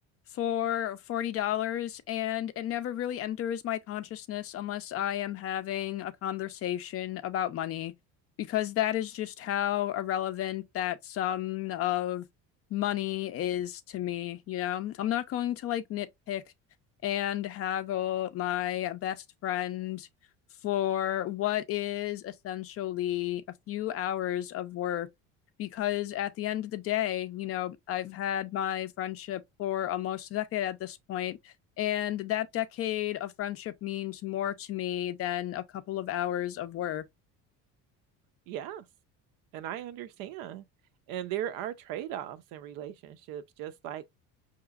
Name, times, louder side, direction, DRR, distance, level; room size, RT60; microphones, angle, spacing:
voice 1, 0.3-7.9 8.4-12.3 12.7-16.4 17.0-20.1 20.6-23.4 23.7-25.1 25.6-37.0, left 12 dB, 40° left, 0.4 m, -32 dB
voice 2, 38.5-38.8 39.5-40.6 41.1-44.1, right 11 dB, 75° right, 0.6 m, -38 dB
4.8 x 2.9 x 2.3 m
cardioid pair, 135°, 36 cm